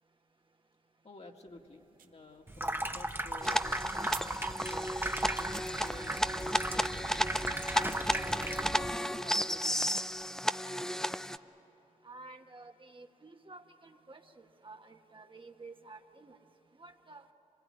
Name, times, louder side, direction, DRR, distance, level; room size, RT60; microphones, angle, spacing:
voice 1, 1.0-4.9 5.4-7.9 8.2-10.0, left 2 dB, 50° left, 1 dB, 2.2 m, -52 dB
sound 1, 1.5-10.3, right 8 dB, 90° right, 0.7 m, -55 dB
Water tap faucet / Sink (filling or washing), 2.5-9.0, right 1 dB, 15° right, 1.2 m, -36 dB
sound 2, 3.4-11.4, equal, 5° left, 0.7 m, -33 dB
voice 2, 12.0-16.4 16.8-17.3, right 3 dB, 35° right, 4 dB, 1.5 m, -52 dB
25.5 x 19.5 x 9.8 m, 3.0 s
supercardioid pair, 40°, 14 cm